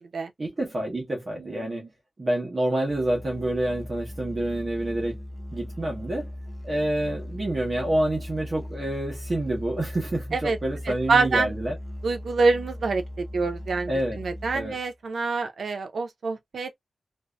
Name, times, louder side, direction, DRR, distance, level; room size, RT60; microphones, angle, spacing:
voice 1, 0.4-1.9 2.2-5.2 5.5-6.3 6.6-11.8 13.9-14.2 14.5-14.8, right 1 dB, 40° right, 1.0 m, -28 dB
voice 2, 1.4-1.9 10.3-10.6 10.9-11.5 12.0-13.9 14.2-16.7, right 4 dB, 85° right, 0.5 m, -26 dB
Musical instrument, 2.9-14.9, left 1 dB, 10° left, 0.5 m, -38 dB
2.6 x 2.4 x 2.2 m
wide cardioid pair, 120°, 0 cm